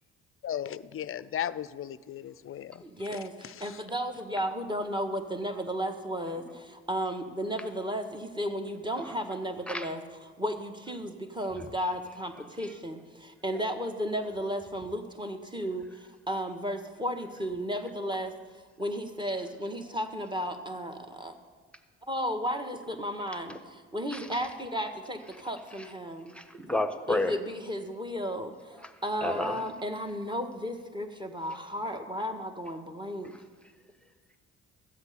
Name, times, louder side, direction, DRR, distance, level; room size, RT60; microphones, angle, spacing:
voice 1, 0.4-2.8 3.1-3.8, left 10 dB, 40° left, 18 dB, 0.5 m, -36 dB
voice 2, 2.8-18.4 18.8-21.3 22.1-26.4 27.1-33.3, equal, 15° right, 6 dB, 1.6 m, -34 dB
voice 3, 26.3-27.3 29.2-29.6, left 2 dB, 5° left, 8 dB, 1.2 m, -30 dB
14.0 x 8.0 x 6.8 m, 1.5 s
hypercardioid pair, 55°, 34 cm